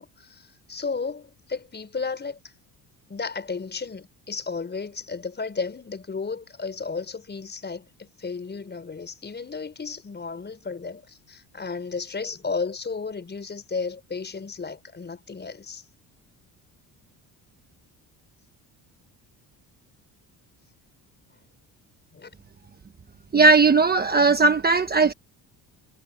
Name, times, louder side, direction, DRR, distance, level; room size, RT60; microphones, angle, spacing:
voice 1, 0.0-2.5 3.1-15.8 22.1-22.3, left 4 dB, 25° left, 6.0 m, -33 dB
voice 2, 23.3-25.1, right 4 dB, 25° right, 1.2 m, -17 dB
cardioid pair, 120°, 39 cm